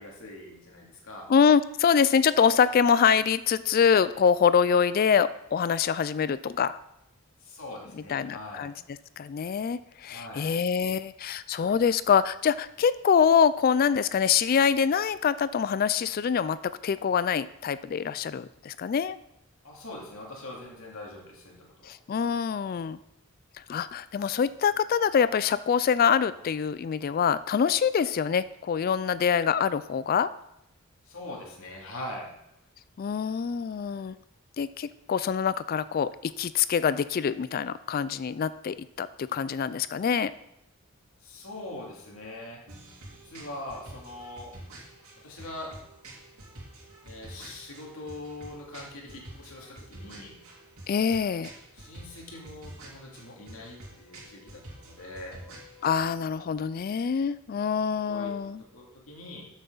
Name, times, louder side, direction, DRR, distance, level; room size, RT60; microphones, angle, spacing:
voice 1, 0.0-1.3 7.4-8.7 10.1-10.5 19.6-21.9 31.0-32.3 41.2-42.6 43.2-44.5 45.2-45.7 47.0-50.4 51.7-55.4 58.0-59.5, left 1 dB, 70° left, -2 dB, 2.6 m, -42 dB
voice 2, 1.3-6.8 8.1-8.7 9.2-19.2 21.9-23.0 23.7-30.3 33.0-34.2 34.6-40.3 50.9-51.5 55.8-58.6, left 7 dB, 45° left, 15 dB, 0.3 m, -25 dB
sound 1, 42.7-56.0, right 1 dB, 80° right, 3.0 m, -48 dB
12.5 x 7.3 x 3.9 m, 0.86 s
head